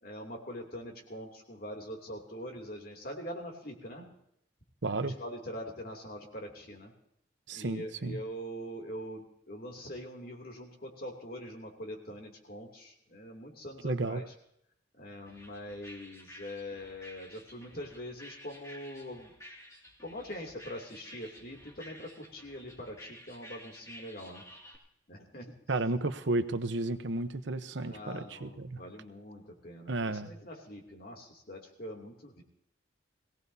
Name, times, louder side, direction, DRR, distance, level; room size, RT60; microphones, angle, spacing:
voice 1, 0.0-4.1 5.0-6.9 7.5-14.2 15.0-19.3 20.0-24.4 25.1-25.6 27.8-32.4, equal, 50° left, 1 dB, 2.8 m, -43 dB
voice 2, 4.8-5.1 7.5-8.2 13.8-14.2 25.7-28.8 29.9-30.3, right 2 dB, 70° right, 10 dB, 0.9 m, -32 dB
sound 1, 15.3-24.8, equal, 15° left, 2.3 m, -52 dB
22.0 x 17.5 x 2.8 m, 0.75 s
head